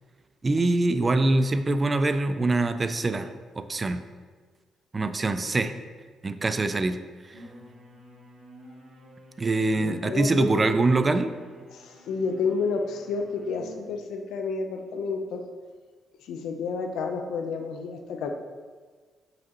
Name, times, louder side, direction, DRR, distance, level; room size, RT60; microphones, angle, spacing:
voice 1, 0.4-4.0 4.9-5.8 6.2-7.0 9.4-11.4, right 2 dB, 30° right, 10 dB, 0.4 m, -24 dB
sound 1, 7.3-13.8, equal, 60° right, 2.1 m, -49 dB
voice 2, 9.7-10.8 11.7-15.4 16.2-18.3, left 4 dB, 80° left, 5 dB, 0.7 m, -30 dB
7.5 x 6.0 x 3.0 m, 1.5 s
cardioid pair, 90°, 0 cm